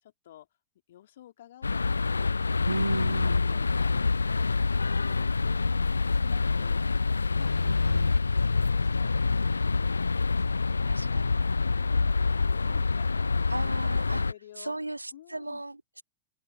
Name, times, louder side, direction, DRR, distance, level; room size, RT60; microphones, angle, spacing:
voice 1, 0.0-0.5 0.9-8.0 8.5-13.7 14.1-14.8 15.1-15.6, left 12 dB, 60° left, 3.1 m, -52 dB
sound 1, 1.6-14.3, left 4 dB, 80° left, 0.3 m, -26 dB
voice 2, 2.6-3.4 7.6-8.1 10.9-11.5 13.5-14.2 14.6-16.0, right 2 dB, 85° right, 1.5 m, -35 dB
open air
figure-of-eight pair, 90°, 0 cm